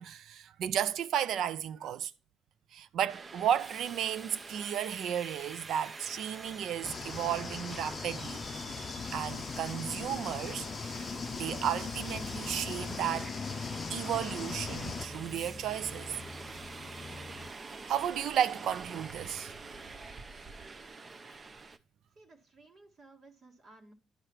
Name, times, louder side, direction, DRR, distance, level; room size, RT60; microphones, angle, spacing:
voice 1, 0.0-2.1 2.7-8.4 9.1-13.3 13.9-16.2 17.9-19.5, right 9 dB, 75° right, 0.5 m, -33 dB
Subway metro underground, 3.1-21.8, right 3 dB, 35° right, 0.7 m, -46 dB
sound 1, 6.8-15.1, left 5 dB, 45° left, 0.5 m, -39 dB
sound 2, 11.5-17.5, left 3 dB, 30° left, 0.9 m, -49 dB
voice 2, 21.0-21.6 22.2-23.9, right 2 dB, 50° right, 1.8 m, -58 dB
11.0 x 4.9 x 4.4 m
cardioid pair, 90°, 0 cm